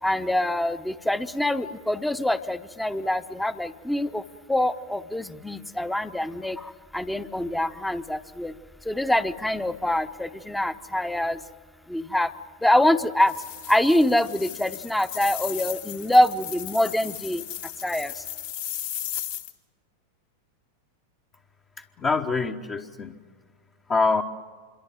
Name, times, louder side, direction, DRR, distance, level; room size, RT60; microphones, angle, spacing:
voice 1, 0.0-4.2 4.5-8.5 8.8-11.4 11.9-12.3 12.6-13.4 13.7-17.4 17.8-18.2, left 1 dB, 5° left, 11 dB, 0.9 m, -24 dB
sound 1, 13.2-19.5, left 11 dB, 55° left, 2.0 m, -36 dB
voice 2, 21.8-23.2 23.9-24.2, left 4 dB, 25° left, 3 dB, 1.1 m, -25 dB
27.0 x 23.0 x 7.6 m, 1.6 s
figure-of-eight pair, 90°, 0 cm